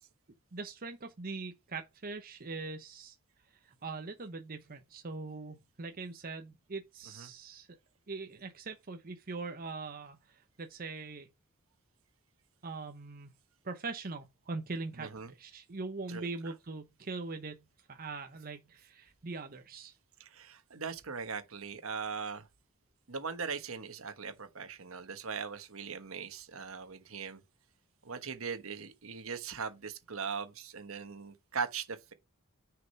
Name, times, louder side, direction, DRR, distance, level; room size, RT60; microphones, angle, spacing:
voice 1, 0.5-3.2 3.6-7.7 8.1-11.3 12.6-13.3 13.6-15.1 15.4-19.9, right 3 dB, 40° right, 0.8 m, -42 dB
voice 2, 15.0-15.3 16.1-16.5 20.2-22.5 23.1-27.4 28.0-32.1, right 5 dB, 70° right, 1.3 m, -40 dB
6.5 x 4.8 x 4.6 m
head